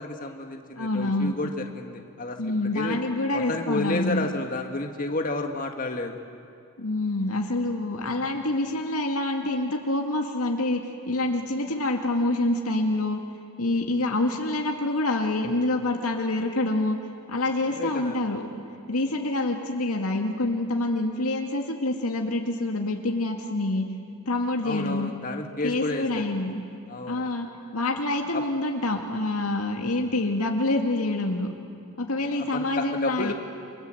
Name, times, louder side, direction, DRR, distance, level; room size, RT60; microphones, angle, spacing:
voice 1, 0.0-3.0 3.3-6.2 17.7-18.2 24.6-26.2 26.9-27.2 28.3-28.4 32.2-33.3, left 2 dB, 40° left, 4 dB, 1.8 m, -31 dB
voice 2, 0.8-1.4 2.4-4.3 6.8-10.8 11.1-13.2 13.6-17.0 17.3-18.5 18.9-23.9 24.3-25.1 25.6-26.6 27.1-27.5 27.7-31.5 32.0-33.3, left 2 dB, 85° left, 2 dB, 2.1 m, -26 dB
28.0 x 25.5 x 7.9 m, 2.4 s
head